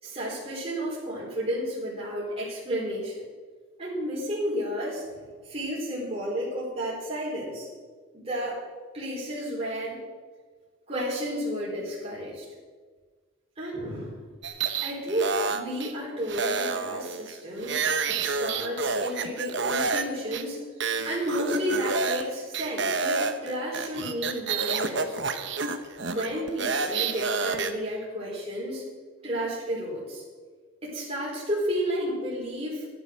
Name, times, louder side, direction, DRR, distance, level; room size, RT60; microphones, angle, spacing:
voice 1, 0.0-3.1 3.8-5.1 5.4-7.7 8.1-8.6 8.9-10.0 10.9-12.4 13.6-14.3 14.8-20.6 21.0-25.2 26.1-28.9 29.2-30.2 30.8-32.9, equal, 30° right, -7 dB, 4.3 m, -32 dB
sound 1, 14.4-15.9 16.3-20.0 20.3-20.4 20.8-22.3 22.5-27.7, right 5 dB, 55° right, 1.1 m, -29 dB
15.5 x 10.5 x 6.5 m, 1.5 s
head